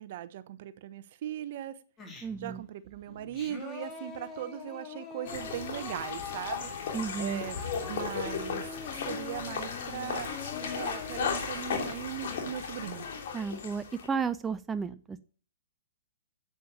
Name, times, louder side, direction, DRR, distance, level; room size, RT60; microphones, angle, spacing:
voice 1, 0.0-1.8 2.4-6.7 7.2-7.6 7.9-10.4 10.7-13.0, right 11 dB, 50° right, 0.9 m, -39 dB
Singing, 2.0-2.6 3.1-11.4, left 5 dB, 20° left, 3.4 m, -44 dB
voice 2, 2.2-2.6 6.9-7.5 13.3-15.2, right 5 dB, 10° right, 0.6 m, -33 dB
sound 1, 5.2-14.1, left 6 dB, 60° left, 3.3 m, -36 dB
8.9 x 8.5 x 7.1 m
hypercardioid pair, 120°, 0 cm